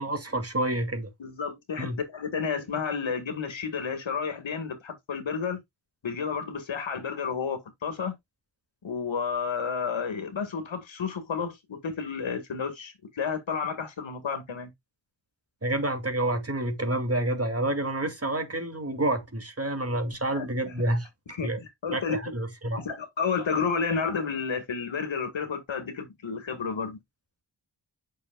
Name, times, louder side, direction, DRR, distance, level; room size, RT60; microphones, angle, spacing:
voice 1, 0.0-1.1 1.8-2.0 15.6-21.6 21.9-22.8, right 1 dB, 30° right, 2.4 m, -29 dB
voice 2, 1.2-5.6 6.0-8.1 8.8-14.7 20.3-20.7 21.3-22.4 22.8-27.0, left 6 dB, 75° left, 1.9 m, -31 dB
8.5 x 6.4 x 2.3 m
cardioid pair, 45°, 46 cm